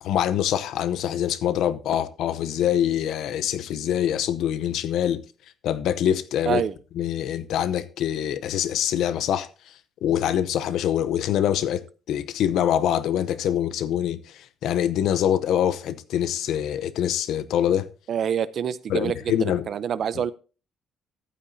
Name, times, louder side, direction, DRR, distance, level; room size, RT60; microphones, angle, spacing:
voice 1, 0.0-5.2 5.6-6.6 7.0-9.7 10.0-17.9 18.9-19.7, left 10 dB, 75° left, 0.7 m, -24 dB
voice 2, 18.1-20.3, right 8 dB, 50° right, 0.6 m, -26 dB
14.5 x 8.7 x 2.7 m
cardioid pair, 155°, 0 cm